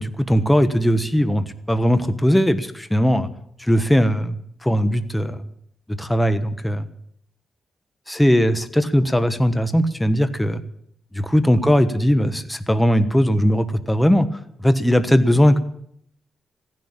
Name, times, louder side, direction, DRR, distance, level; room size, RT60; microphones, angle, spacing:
voice 1, 0.0-3.3 3.6-5.4 5.9-6.9 8.1-10.6 11.1-14.3 14.6-15.6, equal, 5° left, 11 dB, 1.2 m, -19 dB
15.5 x 10.5 x 8.8 m, 0.70 s
cardioid pair, 105°, 0 cm